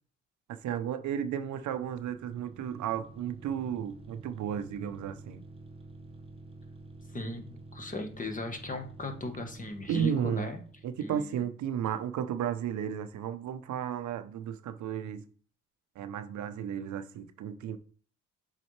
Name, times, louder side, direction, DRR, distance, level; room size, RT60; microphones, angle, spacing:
voice 1, 0.5-5.4 9.9-10.5 10.8-15.3 16.0-17.8, right 9 dB, 70° right, 0.7 m, -33 dB
sound 1, 1.3-11.0, right 2 dB, 20° right, 0.9 m, -49 dB
voice 2, 7.1-10.6 11.0-11.3, left 1 dB, 25° left, 1.2 m, -37 dB
7.2 x 4.1 x 3.2 m
cardioid pair, 90°, 30 cm